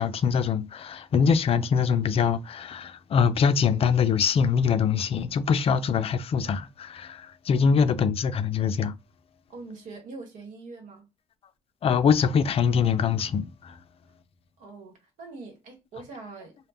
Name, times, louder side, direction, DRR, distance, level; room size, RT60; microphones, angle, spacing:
voice 1, 0.0-8.9 11.8-13.7, left 6 dB, 45° left, 0.4 m, -23 dB
voice 2, 7.6-7.9 9.5-11.0 14.6-16.6, right 3 dB, 80° right, 1.1 m, -43 dB
2.1 x 2.1 x 3.4 m
supercardioid pair, 70°, 14 cm